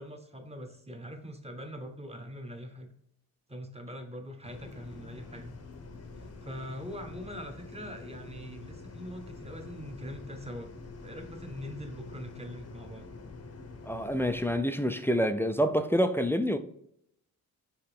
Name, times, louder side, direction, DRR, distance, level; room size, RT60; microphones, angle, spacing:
voice 1, 0.0-2.9 3.5-5.5 6.2-10.7 11.0-13.1, equal, 15° right, 1.0 m, -42 dB
sound 1, 4.4-14.6, left 3 dB, 40° left, 0.8 m, -46 dB
voice 2, 13.9-16.6, equal, 5° left, 0.4 m, -27 dB
4.6 x 3.0 x 3.6 m
cardioid pair, 65°, 37 cm